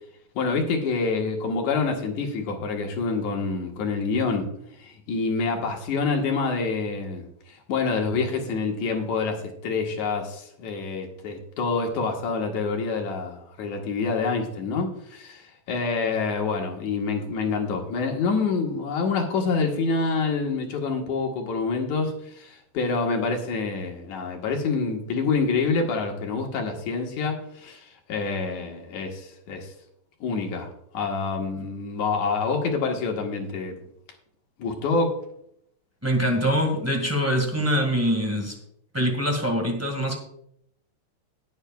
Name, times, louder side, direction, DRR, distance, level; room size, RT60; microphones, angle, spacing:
voice 1, 0.4-4.5 4.8-7.3 7.7-29.7 30.2-33.8 34.6-35.2, left 4 dB, 75° left, 2 dB, 2.8 m, -27 dB
voice 2, 36.0-38.6 38.9-40.2, equal, 10° right, 2 dB, 0.9 m, -24 dB
19.5 x 8.2 x 2.3 m, 0.73 s
omnidirectional pair, 3.4 m